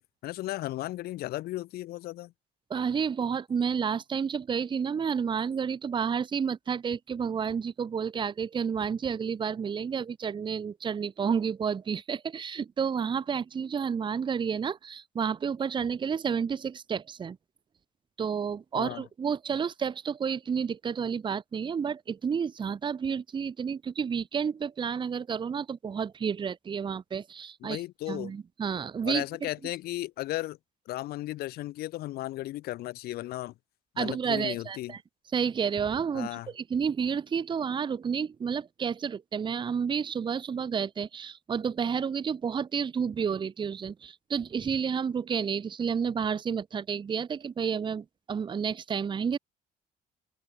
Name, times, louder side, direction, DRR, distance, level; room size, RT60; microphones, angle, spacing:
voice 1, 0.0-2.3 18.7-19.0 27.6-28.3 29.0-30.6 30.9-33.5 33.9-34.9 36.1-36.5, left 16 dB, 65° left, 0.5 m, -35 dB
voice 2, 2.7-17.4 18.2-27.8 28.1-29.2 34.0-35.0 35.3-49.4, right 6 dB, 30° right, 0.7 m, -30 dB
open air
cardioid pair, 110°, 17 cm